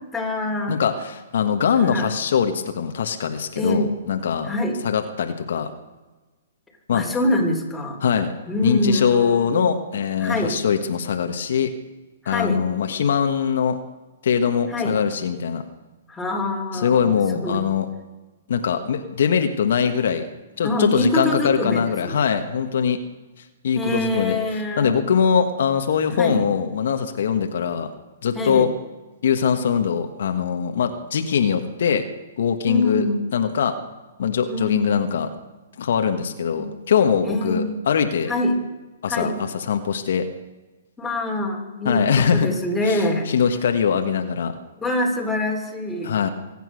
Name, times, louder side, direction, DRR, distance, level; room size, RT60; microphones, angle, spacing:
voice 1, 0.1-0.8 1.8-2.1 3.5-3.9 4.4-4.8 6.9-8.0 8.5-9.7 10.2-10.6 12.2-12.6 14.7-15.0 16.1-17.6 20.6-22.2 23.7-25.0 26.1-26.4 28.3-28.7 32.7-33.3 34.5-35.0 36.5-36.7 37.2-37.7 38.3-38.6 39.1-39.4 41.0-43.3 44.8-46.2, left 1 dB, 5° left, 0 dB, 3.2 m, -25 dB
voice 2, 0.7-4.5 4.8-5.7 6.9-7.0 8.0-8.3 8.6-11.7 12.2-13.8 14.2-15.6 16.7-17.9 18.5-20.3 20.6-23.0 23.6-24.4 24.8-27.9 28.2-28.7 29.2-32.1 32.4-33.0 33.3-33.8 34.2-35.3 35.8-38.3 39.0-40.2 41.8-42.5 42.8-44.5 46.0-46.3, left 7 dB, 65° left, 6 dB, 1.4 m, -22 dB
24.5 x 9.1 x 6.4 m, 1.2 s
hypercardioid pair, 135°, 0 cm